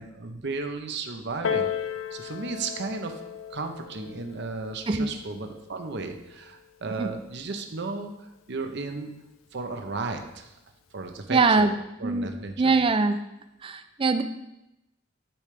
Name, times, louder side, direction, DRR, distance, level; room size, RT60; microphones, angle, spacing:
voice 1, 0.0-3.2 3.5-9.1 9.5-10.5 10.9-11.7 12.0-12.7, right 3 dB, 60° right, 6 dB, 0.8 m, -34 dB
Piano, 1.4-6.6 7.5-7.6, left 7 dB, 90° left, 0.5 m, -35 dB
voice 2, 11.3-11.7 12.0-12.3 12.6-13.2 13.6-14.2, right 4 dB, 25° right, 9 dB, 0.4 m, -22 dB
12.0 x 5.1 x 3.3 m, 0.91 s
head